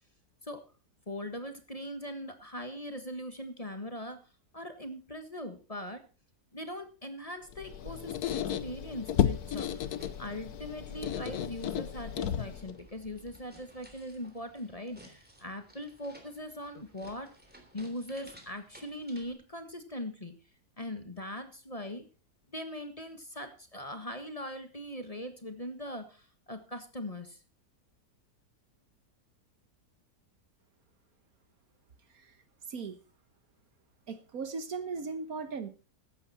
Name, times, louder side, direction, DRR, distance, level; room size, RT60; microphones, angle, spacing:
voice 1, 1.1-4.2 4.5-6.0 6.5-17.3 17.7-20.3 20.8-22.0 22.5-27.4, left 1 dB, 20° left, 8 dB, 1.6 m, -41 dB
Squeak, 7.5-12.8, left 9 dB, 70° left, 1.3 m, -33 dB
sound 1, 9.0-19.3, equal, 5° right, 3.3 m, -57 dB
voice 2, 34.1-35.7, right 4 dB, 60° right, 11 dB, 1.6 m, -37 dB
15.0 x 11.0 x 4.3 m, 0.33 s
omnidirectional pair, 1.7 m